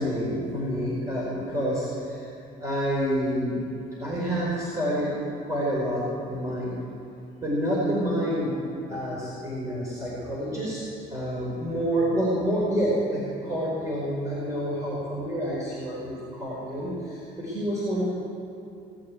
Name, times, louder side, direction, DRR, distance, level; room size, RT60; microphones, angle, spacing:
voice 1, 0.0-2.2 2.6-3.6 4.0-5.2 5.5-6.8 7.4-8.5 8.9-10.8 11.1-18.0, equal, 20° right, -6 dB, 4.9 m, -28 dB
18.5 x 8.7 x 8.5 m, 2.7 s
cardioid pair, 110°, 17 cm